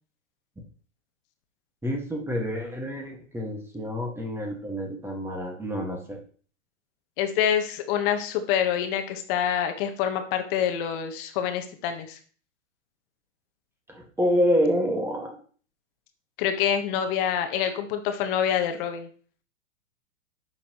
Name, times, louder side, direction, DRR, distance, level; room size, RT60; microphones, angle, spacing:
voice 1, 1.8-6.2 13.9-15.3, equal, 5° right, 1 dB, 1.7 m, -27 dB
voice 2, 7.2-12.2 16.4-19.1, left 9 dB, 45° left, 6 dB, 1.3 m, -26 dB
10.5 x 6.0 x 3.0 m, 0.43 s
hypercardioid pair, 105°, 39 cm